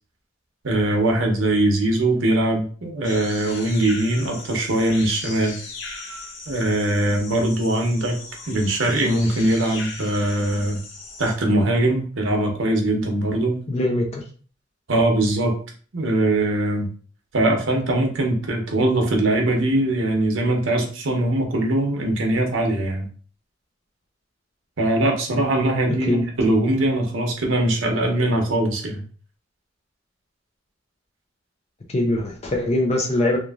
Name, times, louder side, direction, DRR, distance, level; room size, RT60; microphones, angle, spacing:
voice 1, 0.6-5.6 6.5-8.2 8.5-10.8 11.2-13.6 14.9-15.5 15.9-16.9 17.3-23.1 24.8-29.0, right 1 dB, 90° right, 1 dB, 0.8 m, -21 dB
sound 1, 3.0-11.3, left 3 dB, 75° left, 0.7 m, -38 dB
voice 2, 13.7-14.2 26.1-26.3 31.9-33.4, left 1 dB, 35° left, 0 dB, 0.5 m, -22 dB
3.0 x 2.5 x 2.3 m, 0.41 s
head